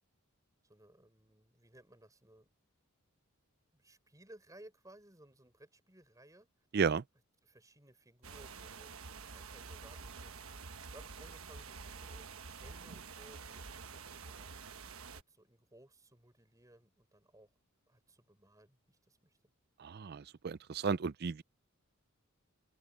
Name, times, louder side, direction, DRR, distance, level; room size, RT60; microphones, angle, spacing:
voice 1, 0.6-2.5 3.7-6.5 7.4-10.5 10.9-14.5 15.1-17.5 17.9-19.4, right 1 dB, 15° right, 5.3 m, -60 dB
voice 2, 6.7-7.0 19.8-21.4, right 5 dB, 45° right, 0.4 m, -33 dB
sound 1, 8.2-15.2, right 5 dB, 70° right, 1.2 m, -48 dB
head